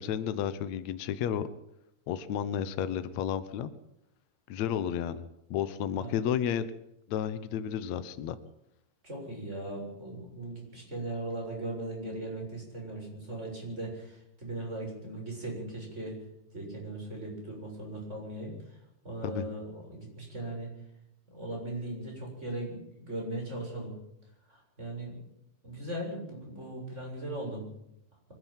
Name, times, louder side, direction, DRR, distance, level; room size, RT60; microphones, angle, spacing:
voice 1, 0.0-1.5 2.1-3.7 4.5-6.6 7.1-8.4 19.2-19.5, left 9 dB, 80° left, 13 dB, 1.6 m, -32 dB
voice 2, 9.0-16.2 16.5-18.8 19.0-20.7 21.3-23.9 24.5-25.2 25.6-27.6, right 1 dB, 15° right, 0 dB, 7.4 m, -38 dB
24.5 x 12.0 x 9.2 m, 0.82 s
omnidirectional pair, 4.6 m